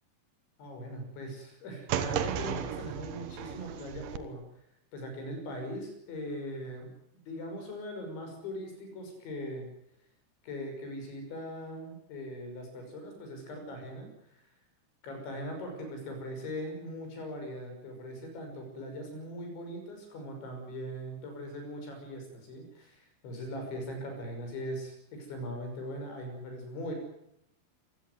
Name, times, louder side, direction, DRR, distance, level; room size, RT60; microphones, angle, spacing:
voice 1, 0.6-4.4 4.9-6.9 7.3-9.7 10.4-14.1 15.0-26.9, equal, 80° left, 4 dB, 8.2 m, -40 dB
sound 1, 1.9-4.2, right 10 dB, 70° right, 2.3 m, -34 dB
27.0 x 16.5 x 9.6 m, 0.79 s
omnidirectional pair, 5.2 m